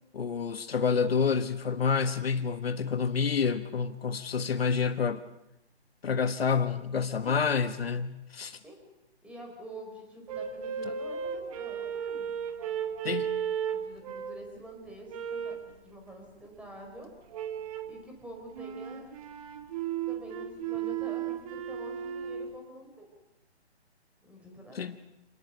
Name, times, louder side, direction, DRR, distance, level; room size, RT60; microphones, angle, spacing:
voice 1, 0.1-5.2 6.0-8.6 13.0-13.3 24.7-24.9, left 6 dB, 60° left, 1.4 m, -28 dB
voice 2, 9.2-12.3 13.7-17.1 17.8-19.1 20.1-23.1 24.2-24.8, right 1 dB, 5° right, 4.3 m, -47 dB
sound 1, 10.3-14.5 15.1-15.7 17.3-18.0 18.5-22.5, right 8 dB, 30° right, 2.0 m, -35 dB
27.0 x 18.5 x 8.2 m
figure-of-eight pair, 145°, 33 cm